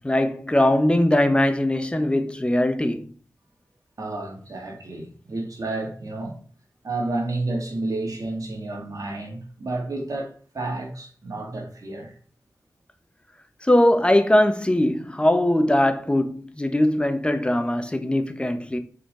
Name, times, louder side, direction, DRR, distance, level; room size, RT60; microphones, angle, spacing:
voice 1, 0.0-3.0 13.6-18.8, left 1 dB, 15° left, 1.1 m, -21 dB
voice 2, 4.0-6.4 6.8-12.1, right 2 dB, 70° right, 2.5 m, -31 dB
6.7 x 5.0 x 3.9 m
cardioid pair, 50°, 6 cm